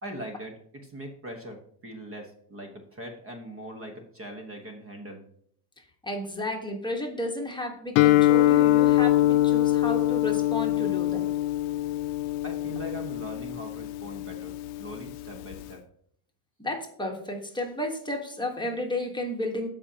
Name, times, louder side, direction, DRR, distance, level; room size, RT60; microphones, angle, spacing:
voice 1, 0.0-5.2 12.4-14.5 14.8-15.9, right 1 dB, 25° right, 4 dB, 1.2 m, -41 dB
voice 2, 6.0-11.3 16.6-19.7, left 1 dB, 10° left, 1 dB, 1.3 m, -32 dB
Guitar, 8.0-15.7, left 14 dB, 75° left, 0.6 m, -24 dB
15.0 x 5.1 x 2.9 m, 0.66 s
cardioid pair, 125°, 48 cm